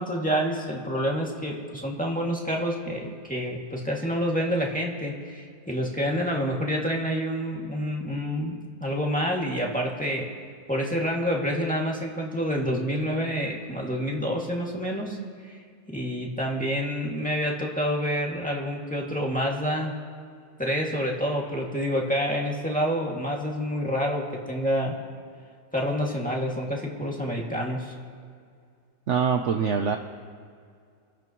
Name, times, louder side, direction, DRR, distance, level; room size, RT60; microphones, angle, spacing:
voice 1, 0.0-10.3 10.7-15.2 15.4-15.6 15.9-19.9 20.6-24.9 25.7-27.9, equal, 5° left, -2 dB, 2.2 m, -28 dB
voice 2, 29.1-30.0, right 6 dB, 60° right, 5 dB, 0.9 m, -24 dB
28.0 x 15.0 x 3.1 m, 2.2 s
omnidirectional pair, 1.7 m